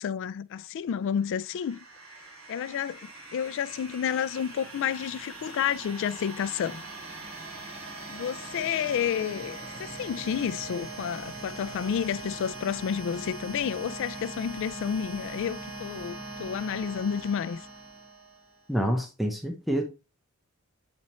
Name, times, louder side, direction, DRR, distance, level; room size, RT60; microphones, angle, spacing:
voice 1, 0.0-1.8 2.5-6.8 8.1-17.6, left 8 dB, 60° left, 0.3 m, -30 dB
sound 1, 1.0-18.7, right 2 dB, 80° right, 2.5 m, -41 dB
voice 2, 18.7-19.8, equal, ahead, 0.7 m, -27 dB
7.4 x 4.2 x 3.0 m
head